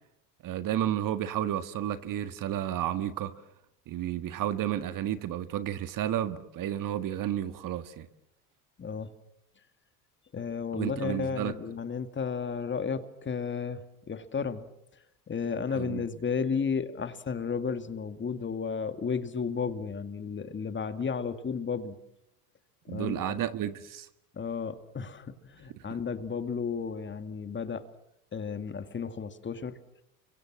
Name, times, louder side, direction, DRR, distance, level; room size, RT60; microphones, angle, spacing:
voice 1, 0.4-3.3 3.9-8.1 10.7-11.5 15.8-16.0 22.9-24.1, right 11 dB, 45° right, 11 dB, 1.8 m, -32 dB
voice 2, 8.8-9.1 10.3-14.7 15.3-22.0 22.9-23.4 24.3-27.8 28.3-29.7, left 6 dB, 25° left, 10 dB, 2.2 m, -33 dB
29.0 x 24.5 x 7.5 m, 0.80 s
hypercardioid pair, 90°, 45 cm